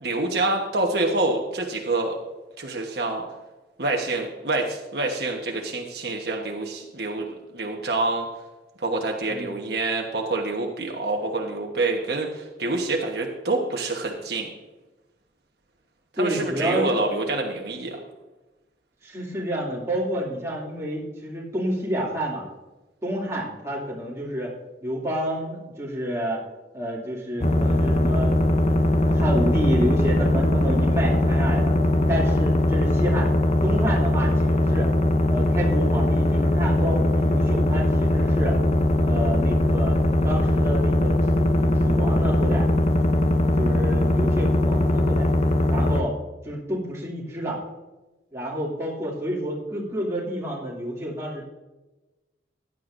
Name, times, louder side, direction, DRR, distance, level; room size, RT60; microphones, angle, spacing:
voice 1, 0.0-2.1 2.6-3.2 3.8-7.3 7.5-8.3 8.8-14.5 16.2-18.0, right 2 dB, 65° right, 1 dB, 1.2 m, -26 dB
voice 2, 16.2-16.9 19.0-22.4 23.0-24.5 24.8-26.4 26.7-28.8 29.1-31.7 32.1-33.3 33.6-34.9 35.3-38.6 39.0-40.0 40.2-42.7 43.6-45.3 45.7-47.6 48.3-51.5, equal, 15° right, -5 dB, 2.6 m, -29 dB
sound 1, 27.4-46.0, left 1 dB, 35° left, 0.6 m, -20 dB
16.0 x 10.5 x 2.6 m, 1.1 s
head